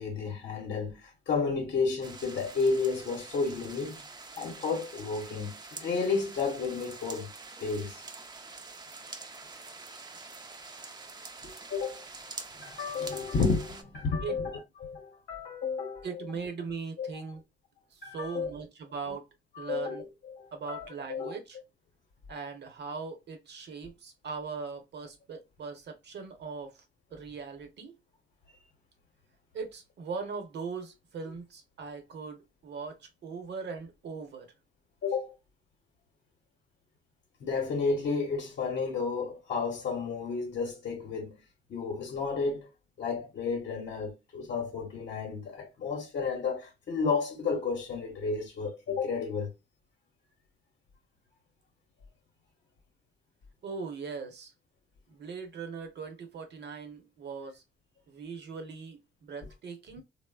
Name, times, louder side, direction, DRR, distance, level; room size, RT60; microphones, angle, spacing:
voice 1, 0.0-4.0 4.4-7.3 7.6-8.0 11.4-12.0 12.6-16.1 17.0-17.2 18.0-18.5 19.6-21.4 35.0-35.3 37.4-41.4 41.7-42.7 43.0-49.5, left 4 dB, 55° left, 0.8 m, -32 dB
sound 1, 2.0-13.8, right 3 dB, 20° right, 0.4 m, -46 dB
voice 2, 16.0-17.4 17.9-19.2 19.6-20.0 20.5-21.6 22.3-26.8 27.1-28.0 29.5-34.5 53.6-54.5 55.1-57.6 58.1-60.0, right 5 dB, 60° right, 0.9 m, -40 dB
3.1 x 2.0 x 2.3 m
cardioid pair, 90°, 20 cm